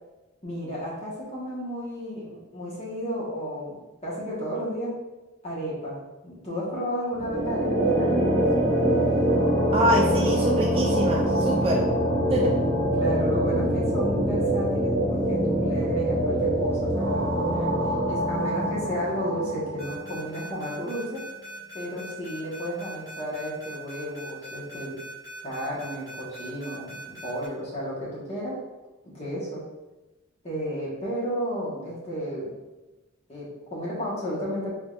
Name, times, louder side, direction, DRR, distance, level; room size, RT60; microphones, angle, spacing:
voice 1, 0.4-3.8 4.0-4.9 5.4-6.0 6.2-8.4 12.4-12.5 12.9-17.7 18.1-21.2 21.7-25.0 25.4-28.6 29.1-29.6 30.4-32.5 33.3-34.7, equal, 30° left, -6 dB, 1.2 m, -32 dB
sound 1, 7.1-20.3, right 1 dB, 65° right, 0.8 m, -24 dB
voice 2, 9.7-11.8 12.3-12.5, equal, 25° right, -2 dB, 0.3 m, -24 dB
sound 2, 19.8-27.5, equal, 5° left, 1.5 m, -41 dB
3.7 x 3.4 x 2.4 m, 1.1 s
head